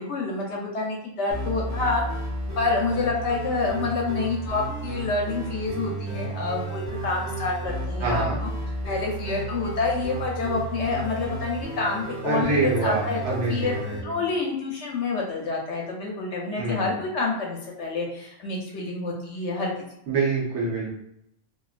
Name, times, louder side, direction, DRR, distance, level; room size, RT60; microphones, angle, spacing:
voice 1, 0.0-2.0 2.6-8.5 8.8-13.8 14.0-19.7, left 3 dB, 65° left, -1 dB, 0.8 m, -28 dB
sound 1, 1.3-14.0, right 2 dB, 30° right, 0.3 m, -33 dB
voice 2, 8.0-8.4 12.2-14.1 16.5-17.0 20.1-20.9, right 3 dB, 65° right, -4 dB, 1.1 m, -26 dB
3.0 x 2.3 x 2.4 m, 0.76 s
omnidirectional pair, 1.4 m